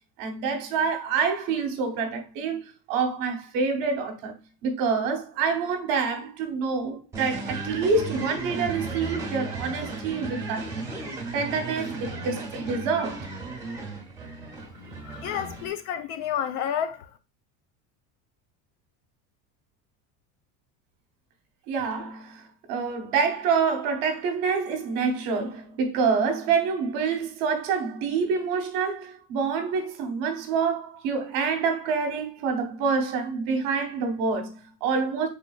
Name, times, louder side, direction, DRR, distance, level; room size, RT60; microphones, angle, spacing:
voice 1, 0.2-4.3 4.6-10.7 11.3-13.3 21.7-22.4 22.7-35.3, right 5 dB, 50° right, 1.0 m, -27 dB
sound 1, 7.1-15.7, right 3 dB, 5° right, 0.9 m, -35 dB
voice 2, 15.0-17.1, left 9 dB, 80° left, 0.6 m, -30 dB
3.8 x 3.4 x 2.3 m
cardioid pair, 170°, 41 cm